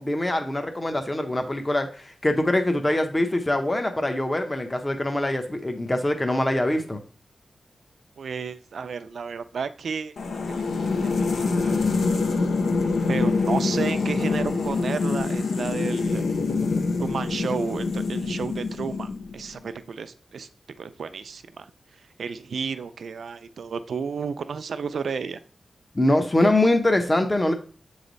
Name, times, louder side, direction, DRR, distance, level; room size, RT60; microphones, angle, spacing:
voice 1, 0.0-7.0 25.9-27.5, left 1 dB, 20° left, 6 dB, 0.7 m, -23 dB
voice 2, 8.2-12.1 13.1-16.2 17.0-20.5 20.8-21.7 22.2-25.4, right 5 dB, 75° right, 11 dB, 0.4 m, -32 dB
sound 1, 10.2-19.5, left 4 dB, 90° left, 0.7 m, -25 dB
7.7 x 3.2 x 3.9 m, 0.39 s
wide cardioid pair, 150°, 0 cm